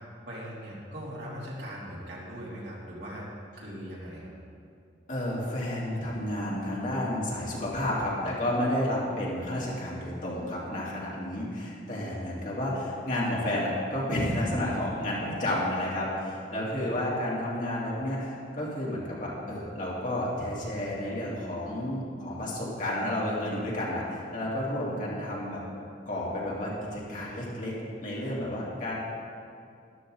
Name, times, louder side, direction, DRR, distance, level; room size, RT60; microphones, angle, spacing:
voice 1, 0.3-3.3 3.6-4.3 16.8-17.0, equal, 65° right, -6 dB, 3.1 m, -40 dB
voice 2, 5.1-25.6 26.1-27.7 28.0-28.9, left 1 dB, 45° left, -6 dB, 2.8 m, -31 dB
13.0 x 12.0 x 4.0 m, 2.4 s
head